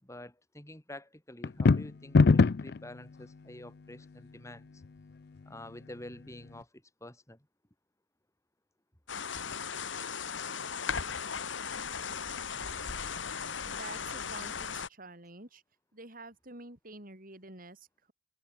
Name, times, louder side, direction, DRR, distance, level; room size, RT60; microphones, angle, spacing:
voice 1, 0.0-4.8 5.4-7.4, left 1 dB, 15° left, 5.0 m, -48 dB
sound 1, 1.4-2.8, left 4 dB, 55° left, 0.5 m, -21 dB
sound 2, 9.1-14.9, left 6 dB, 75° left, 1.4 m, -37 dB
voice 2, 13.6-15.6 15.9-18.1, right 2 dB, 45° right, 4.8 m, -48 dB
head